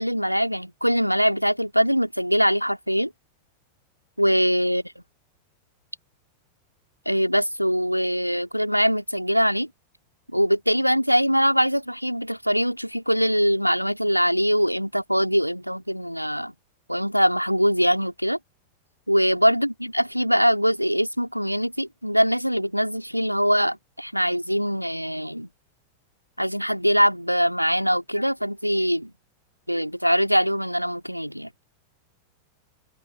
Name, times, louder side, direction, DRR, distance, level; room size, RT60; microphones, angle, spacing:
voice 1, 0.0-3.1 4.2-4.8 7.0-9.7 10.3-16.5 16.9-18.4 19.1-25.5 26.4-29.1 29.7-31.5, equal, 90° right, 3.0 m, -22 dB
open air
figure-of-eight pair, 90°, 0 cm